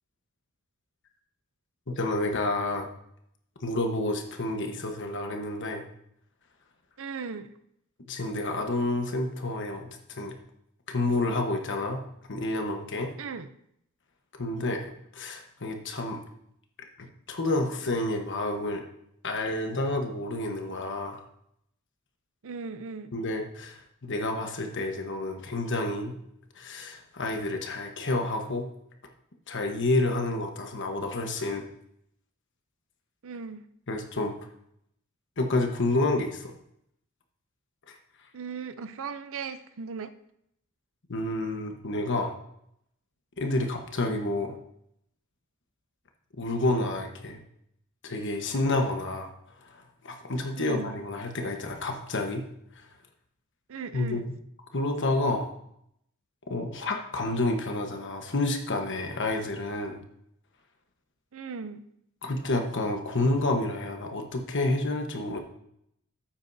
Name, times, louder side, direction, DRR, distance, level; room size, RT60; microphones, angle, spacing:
voice 1, 1.9-2.9 3.6-5.8 8.1-10.4 10.9-13.1 14.3-16.2 17.0-18.8 19.2-21.2 23.1-26.2 26.6-28.7 29.5-31.6 33.9-34.3 35.4-36.5 41.1-42.3 43.4-44.6 46.4-47.4 48.0-49.3 49.6-52.5 52.7-52.9 53.9-54.2 54.7-55.5 56.5-60.0 62.2-65.4, left 2 dB, 55° left, 4 dB, 1.2 m, -29 dB
voice 2, 7.0-7.5 13.2-13.5 22.4-23.1 33.2-33.6 38.3-40.1 50.6-50.9 53.7-54.3 61.3-61.8, right 5 dB, 65° right, 11 dB, 0.6 m, -37 dB
12.5 x 8.8 x 2.7 m, 0.74 s
head